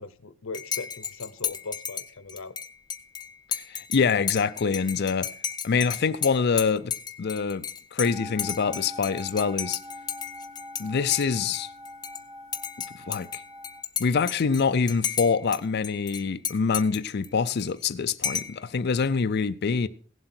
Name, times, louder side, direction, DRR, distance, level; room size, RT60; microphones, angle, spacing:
voice 1, 0.0-2.6, left 3 dB, 70° left, 0.8 m, -39 dB
Dishes pots and pans / Cutlery silverware / Chink clink, 0.5-10.8 11.1-12.2 12.5-15.6 15.8-17.8 18.2-18.6, left 8 dB, 20° left, 0.7 m, -33 dB
voice 2, 3.5-5.3 5.6-6.9 7.2-7.7 7.9-9.8 10.8-11.7 12.9-13.4 14.0-19.9, left 5 dB, 50° left, 0.4 m, -25 dB
sound 1, 8.0-13.8, left 1 dB, 35° right, 1.2 m, -43 dB
17.0 x 7.7 x 4.4 m
head